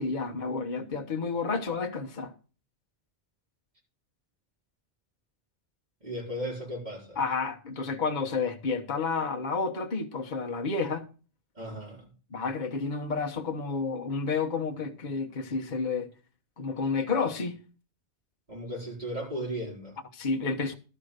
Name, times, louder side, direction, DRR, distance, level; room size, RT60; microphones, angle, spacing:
voice 1, 0.0-2.3 7.1-11.1 12.3-16.1 16.6-17.6 20.1-20.7, left 4 dB, 45° left, 1.2 m, -30 dB
voice 2, 6.0-7.2 11.5-12.1 18.5-20.0, equal, 40° right, 4.8 m, -36 dB
12.5 x 5.7 x 6.5 m
omnidirectional pair, 1.2 m